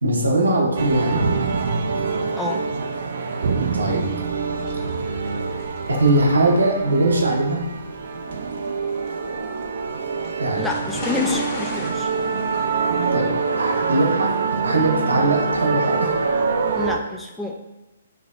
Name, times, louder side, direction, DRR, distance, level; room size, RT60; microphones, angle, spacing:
voice 1, 0.0-1.2 3.7-4.0 5.9-7.6 10.4-10.7 13.1-13.3 13.6-14.4 14.6-16.2, right 2 dB, 85° right, 0 dB, 1.0 m, -20 dB
sound 1, 0.8-17.0, right 5 dB, 65° right, 0.4 m, -25 dB
sound 2, 4.6-16.9, left 1 dB, 40° left, 1.5 m, -38 dB
voice 2, 10.6-12.1 16.7-17.6, left 3 dB, 5° left, 1 dB, 0.3 m, -28 dB
6.3 x 2.8 x 2.5 m, 1.0 s
hypercardioid pair, 135°, 0 cm